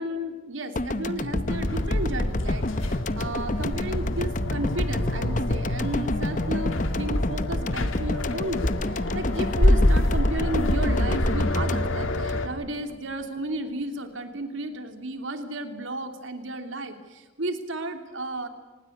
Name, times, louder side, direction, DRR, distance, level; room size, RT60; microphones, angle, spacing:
voice 1, 0.0-18.5, right 1 dB, 75° right, 6 dB, 2.9 m, -33 dB
sound 1, 0.8-13.0, left 2 dB, 40° left, 0.9 m, -29 dB
Bass guitar, 1.3-7.6, right 2 dB, 10° right, 4.2 m, -48 dB
sound 2, 1.5-12.5, left 1 dB, 85° left, 2.4 m, -26 dB
24.5 x 20.0 x 8.5 m, 1.3 s
head